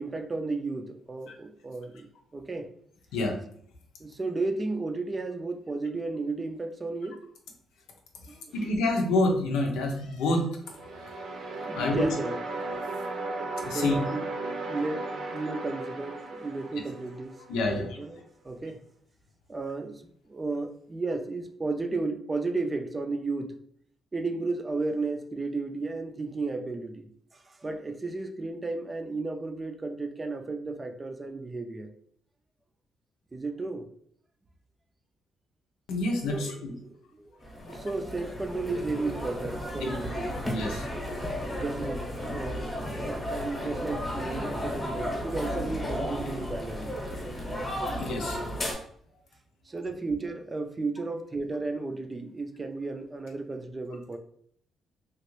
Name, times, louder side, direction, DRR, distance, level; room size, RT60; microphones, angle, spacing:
voice 1, 0.0-2.1 2.3-2.7 4.0-7.2 8.3-8.7 11.0-11.1 11.4-12.5 13.7-18.8 19.5-20.0 20.3-23.5 24.1-31.9 33.3-33.9 36.3-37.3 37.7-40.2 41.4-42.0 42.3-46.9 49.7-54.2, right 3 dB, 25° right, 0.4 m, -34 dB
voice 2, 8.5-10.5 10.8-11.3 11.7-12.1 13.6-14.0 17.5-18.0 35.9-36.7 37.6-37.8 39.8-40.0 40.5-40.9 48.0-48.4, left 2 dB, 90° left, 0.6 m, -28 dB
sound 1, 10.6-17.7, right 2 dB, 60° right, 0.7 m, -36 dB
sound 2, 37.4-48.7, equal, 20° left, 0.9 m, -34 dB
3.0 x 2.5 x 3.0 m
cardioid pair, 90°, 0 cm